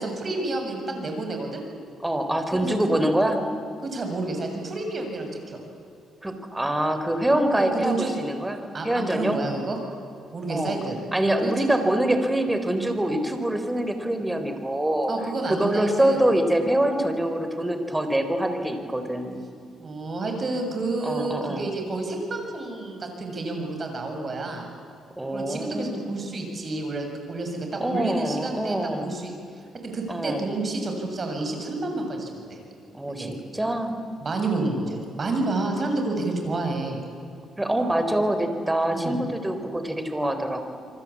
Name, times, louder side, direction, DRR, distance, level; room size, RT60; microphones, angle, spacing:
voice 1, 0.0-1.6 2.5-2.9 3.8-5.6 7.6-8.1 8.7-9.8 10.3-11.0 11.4-11.7 15.1-16.3 19.8-24.7 25.3-29.3 29.8-32.6 33.1-33.3 34.2-37.0 38.9-39.2, right 2 dB, 40° right, 4 dB, 7.4 m, -30 dB
voice 2, 2.0-3.4 6.2-9.4 10.5-10.8 11.1-15.1 15.5-19.4 21.0-21.6 25.2-26.0 27.8-29.1 30.1-30.4 32.9-34.0 37.6-40.6, right 1 dB, 10° right, 7 dB, 3.9 m, -25 dB
27.5 x 24.0 x 8.7 m, 2.6 s
cardioid pair, 90°, 0 cm